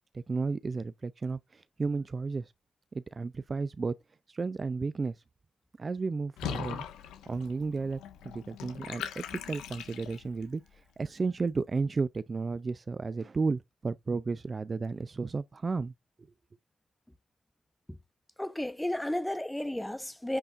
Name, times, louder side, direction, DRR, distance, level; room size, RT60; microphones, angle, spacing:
voice 1, 0.1-2.5 2.9-3.9 4.3-5.2 5.8-6.8 7.3-8.0 8.2-10.6 11.0-15.9, right 4 dB, 30° right, 0.4 m, -33 dB
Water / Bathtub (filling or washing), 6.4-10.4, left 9 dB, 90° left, 1.5 m, -40 dB
voice 2, 18.4-20.4, left 1 dB, 5° left, 0.9 m, -33 dB
9.8 x 6.7 x 2.5 m
cardioid pair, 90°, 0 cm